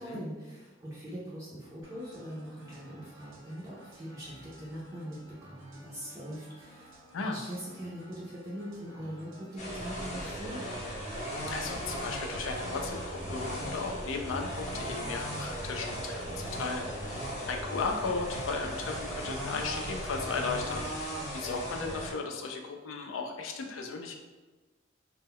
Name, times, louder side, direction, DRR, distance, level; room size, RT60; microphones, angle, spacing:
voice 1, 0.0-10.7, equal, 15° right, -8 dB, 0.4 m, -42 dB
sound 1, 1.8-21.0, right 1 dB, 80° right, 0.6 m, -49 dB
sound 2, 9.6-22.1, equal, 35° left, 0.6 m, -37 dB
voice 2, 11.5-20.9 21.3-24.1, left 4 dB, 80° left, 3 dB, 0.4 m, -36 dB
2.2 x 2.0 x 3.5 m, 1.2 s
head